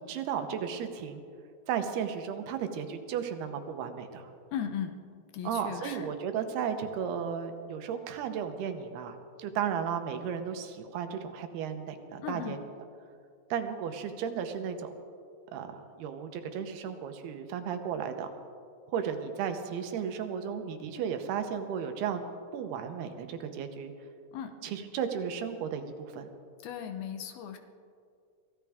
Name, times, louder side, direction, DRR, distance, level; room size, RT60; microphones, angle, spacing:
voice 1, 0.1-1.2 1.7-4.3 5.4-12.6 13.5-14.9 15.5-18.3 18.9-22.3 22.5-23.9 24.6-26.3, right 7 dB, 80° right, 7 dB, 2.9 m, -34 dB
voice 2, 4.5-5.0 5.3-6.1 12.2-12.6 24.3-24.5 26.6-27.6, left 8 dB, 75° left, 7 dB, 2.6 m, -36 dB
24.5 x 16.0 x 3.6 m, 2.3 s
omnidirectional pair, 4.7 m